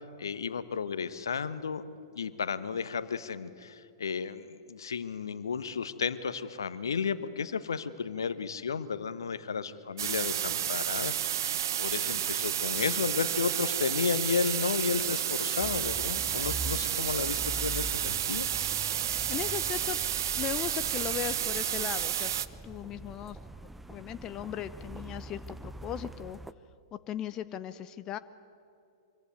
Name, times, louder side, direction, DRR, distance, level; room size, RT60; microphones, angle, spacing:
voice 1, 0.2-1.8 2.1-18.5, left 5 dB, 70° left, 14 dB, 1.2 m, -33 dB
sound 1, 10.0-22.5, right 10 dB, 60° right, 0.9 m, -31 dB
sound 2, 15.6-26.5, right 1 dB, 5° right, 0.7 m, -43 dB
voice 2, 19.3-20.0 20.3-22.3 22.6-23.4 23.9-26.4 26.9-28.2, left 11 dB, 30° left, 13 dB, 0.7 m, -37 dB
25.5 x 23.5 x 9.4 m, 2.6 s
figure-of-eight pair, 105°, 2 cm